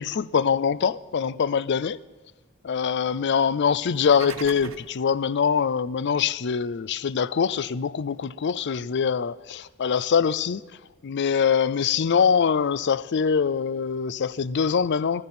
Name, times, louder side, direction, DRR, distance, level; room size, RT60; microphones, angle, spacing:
voice 1, 0.0-2.0 2.6-10.6 11.0-15.2, left 6 dB, 55° left, 0.4 m, -23 dB
sound 1, 3.8-5.0, right 5 dB, 75° right, 0.9 m, -39 dB
15.5 x 14.0 x 4.3 m
head